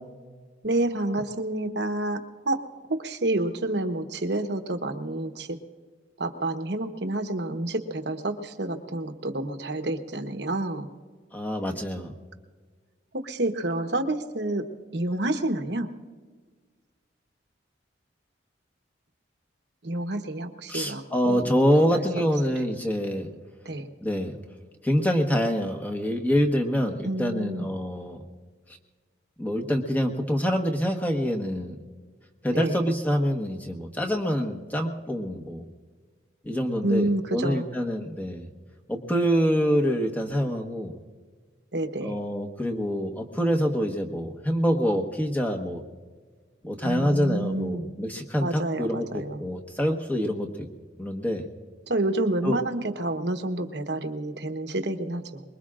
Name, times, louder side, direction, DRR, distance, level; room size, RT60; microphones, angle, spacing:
voice 1, 0.6-2.6 2.9-5.6 6.2-10.9 13.1-14.7 14.9-15.9 19.8-21.5 21.9-22.0 23.6-23.9 27.0-27.7 32.5-32.8 36.8-37.7 41.7-42.2 46.8-47.9 48.4-49.4 51.9-55.4, right 2 dB, 60° right, 7 dB, 1.1 m, -29 dB
voice 2, 11.3-12.1 20.7-23.3 24.0-24.3 24.8-28.2 29.4-31.8 32.4-35.6 36.4-38.5 38.9-40.9 42.0-45.8 46.6-50.7 51.0-51.4 52.4-52.6, equal, 10° left, 3 dB, 1.2 m, -26 dB
24.0 x 22.0 x 2.5 m, 1.5 s
head